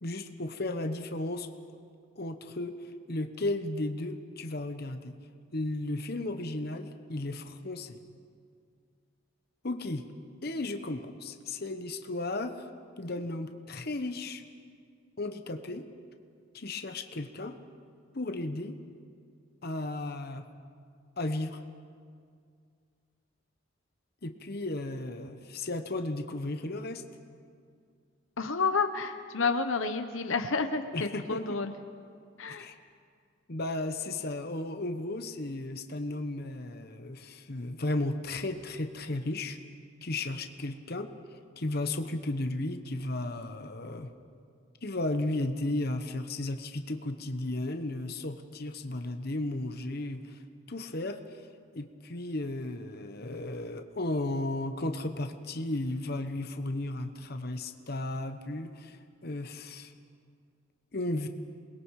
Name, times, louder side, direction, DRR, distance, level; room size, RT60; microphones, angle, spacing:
voice 1, 0.0-1.5 2.2-2.8 3.1-5.1 5.5-8.0 9.6-10.0 10.4-12.6 13.0-14.4 15.2-15.9 16.5-17.5 18.1-18.8 19.6-20.4 21.2-21.6 24.2-27.0 30.9-31.4 32.5-32.8 33.5-39.6 40.0-41.1 41.6-44.1 44.8-50.4 50.7-51.4 51.7-59.0 59.2-59.9 60.9-61.3, left 2 dB, 50° left, 7 dB, 1.1 m, -34 dB
voice 2, 28.4-31.7 32.4-32.7, left 4 dB, 75° left, 8 dB, 0.9 m, -30 dB
28.0 x 21.0 x 4.9 m, 2.2 s
head